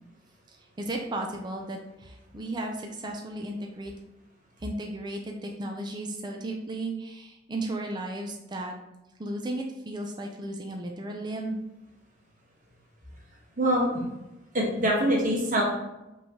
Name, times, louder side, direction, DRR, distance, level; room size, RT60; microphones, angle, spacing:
voice 1, 0.5-3.9 4.6-8.7 9.2-11.6, right 1 dB, 25° right, 1 dB, 0.4 m, -35 dB
voice 2, 13.6-13.9 14.5-15.6, right 1 dB, 45° right, -2 dB, 1.2 m, -24 dB
5.4 x 3.2 x 2.8 m, 0.97 s
head